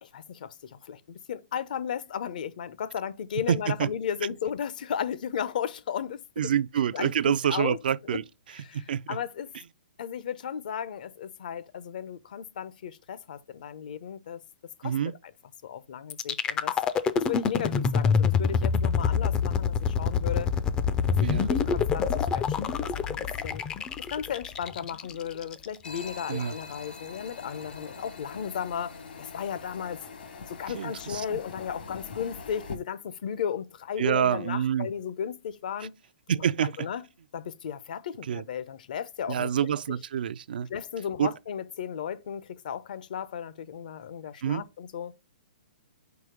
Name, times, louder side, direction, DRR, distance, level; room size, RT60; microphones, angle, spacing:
voice 1, 0.0-6.5 6.9-8.2 8.6-9.5 10.0-14.4 14.8-15.0 15.6-16.8 17.1-20.5 21.1-23.6 24.0-30.0 30.5-36.0 36.3-37.0 37.3-39.5 39.9-40.0 40.7-45.1, left 8 dB, 55° left, 0.7 m, -35 dB
voice 2, 3.5-3.9 6.4-8.2 8.7-9.2 14.8-15.1 21.2-21.5 26.3-26.5 30.8-31.4 34.0-34.9 36.3-36.7 38.3-38.4 39.3-40.7 41.2-41.3 44.4-44.6, right 9 dB, 65° right, 0.4 m, -27 dB
sound 1, 16.1-26.1, left 6 dB, 15° left, 0.4 m, -26 dB
sound 2, 25.8-32.8, left 4 dB, 75° left, 1.7 m, -43 dB
4.8 x 4.2 x 5.1 m
hypercardioid pair, 160°, 5 cm